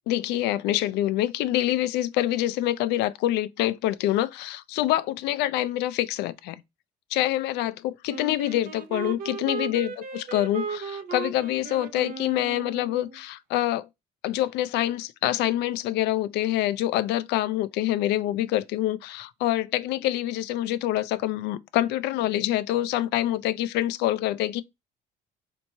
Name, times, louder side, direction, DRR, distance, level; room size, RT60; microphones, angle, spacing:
voice 1, 0.0-6.6 7.1-13.9 14.2-24.6, left 14 dB, 85° left, 0.4 m, -26 dB
Wind instrument woodwind instrument, 8.1-13.2, right 5 dB, 55° right, 0.6 m, -36 dB
4.3 x 3.0 x 2.7 m
cardioid pair, 110°, 17 cm